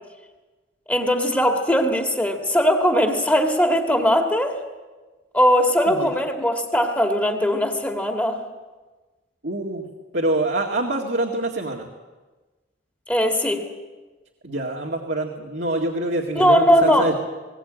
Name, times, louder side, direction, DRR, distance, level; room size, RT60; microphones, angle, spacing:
voice 1, 0.9-4.6 5.3-8.4 13.1-13.6 16.4-17.1, equal, 10° left, 3 dB, 2.1 m, -19 dB
voice 2, 9.4-9.9 10.1-11.9 14.4-17.1, right 2 dB, 65° right, 0 dB, 2.1 m, -25 dB
20.5 x 18.5 x 8.8 m, 1.2 s
head